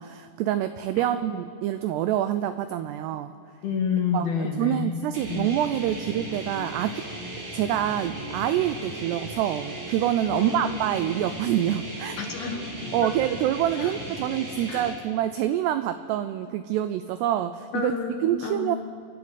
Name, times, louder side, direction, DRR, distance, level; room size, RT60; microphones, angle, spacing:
voice 1, 0.0-3.3 4.1-7.0 7.5-12.2 12.9-17.9 18.2-18.8, right 11 dB, 90° right, 11 dB, 2.3 m, -26 dB
voice 2, 3.6-5.5 10.3-10.7 11.0-11.1 12.2-12.7 13.8-13.9 14.7-14.8 17.7-18.7, left 6 dB, 65° left, 3 dB, 2.9 m, -29 dB
sound 1, 5.1-14.9, right 1 dB, 40° right, 5.1 m, -37 dB
29.0 x 11.0 x 8.2 m, 2.3 s
omnidirectional pair, 5.5 m